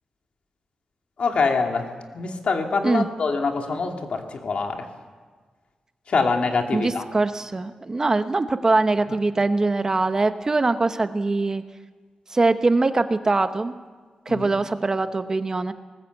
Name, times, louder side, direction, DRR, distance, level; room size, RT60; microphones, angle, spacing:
voice 1, 1.2-1.9 2.1-4.9 6.1-7.0 14.3-14.5, left 4 dB, 60° left, 3 dB, 2.4 m, -24 dB
voice 2, 6.7-11.6 12.3-13.7 14.3-15.7, right 3 dB, 25° right, 9 dB, 1.0 m, -22 dB
20.5 x 19.5 x 8.2 m, 1.5 s
wide cardioid pair, 155°, 2 cm